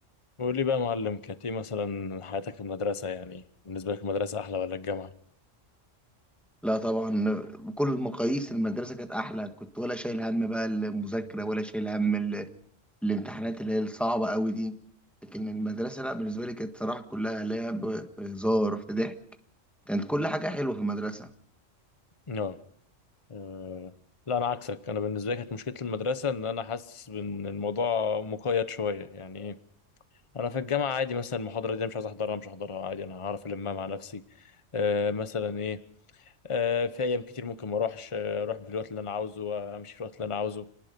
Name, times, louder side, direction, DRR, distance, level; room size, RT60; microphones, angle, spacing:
voice 1, 0.4-5.1 22.3-22.6 23.3-23.9 24.3-29.6 30.3-34.2 34.7-35.8 36.4-40.7, left 5 dB, 25° left, 12 dB, 1.0 m, -31 dB
voice 2, 6.6-12.5 13.0-14.7 15.2-19.1 19.9-21.3, right 1 dB, ahead, 7 dB, 1.5 m, -30 dB
29.0 x 19.5 x 5.3 m, 0.63 s
omnidirectional pair, 1.3 m